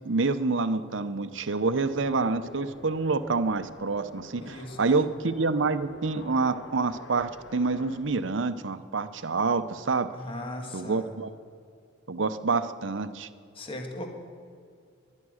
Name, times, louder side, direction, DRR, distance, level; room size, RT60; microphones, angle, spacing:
voice 1, 0.0-10.1 10.7-11.3 12.1-13.3, right 3 dB, 70° right, 12 dB, 0.8 m, -27 dB
sound 1, 1.6-8.0, left 1 dB, 70° left, 1.6 m, -48 dB
voice 2, 4.4-4.8 10.1-11.1 13.5-14.1, left 1 dB, 25° left, 3 dB, 1.8 m, -38 dB
21.0 x 11.0 x 6.4 m, 2.4 s
head